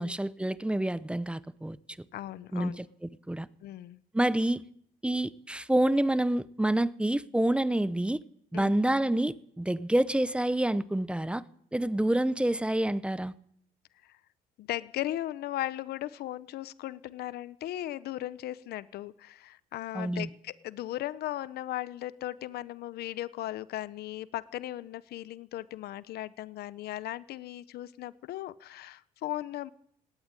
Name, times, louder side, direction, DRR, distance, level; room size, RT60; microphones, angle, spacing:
voice 1, 0.0-1.8 2.5-2.9 3.3-3.5 4.1-4.6 5.0-8.2 8.5-11.4 11.7-13.3 19.9-20.3, right 1 dB, 5° right, 0.9 m, -27 dB
voice 2, 2.1-2.9 3.6-4.0 8.5-8.8 14.0-14.2 14.6-29.7, left 14 dB, 70° left, 0.9 m, -37 dB
19.0 x 18.0 x 9.1 m
cardioid pair, 110°, 17 cm